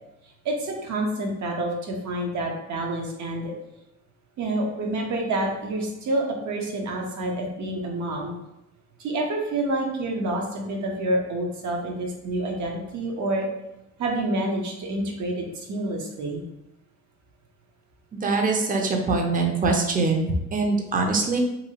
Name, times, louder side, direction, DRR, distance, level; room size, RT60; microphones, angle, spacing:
voice 1, 0.4-3.5 4.4-8.3 9.0-13.5 14.0-16.4, right 1 dB, 65° right, 0 dB, 0.8 m, -28 dB
voice 2, 18.1-21.4, right 3 dB, 30° right, 2 dB, 0.5 m, -23 dB
2.8 x 2.8 x 2.8 m, 0.89 s
cardioid pair, 90°, 30 cm